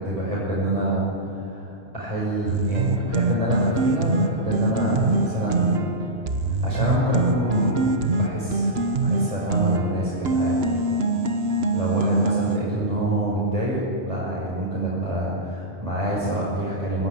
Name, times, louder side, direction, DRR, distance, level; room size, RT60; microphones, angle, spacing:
voice 1, 0.0-5.8 6.6-7.8 8.1-8.7 9.0-10.6 11.7-13.8 14.1-17.1, right 1 dB, 35° right, -7 dB, 6.0 m, -26 dB
sound 1, 2.5-12.6, right 2 dB, 75° right, 1.5 m, -24 dB
26.0 x 18.0 x 9.6 m, 2.7 s
omnidirectional pair, 1.1 m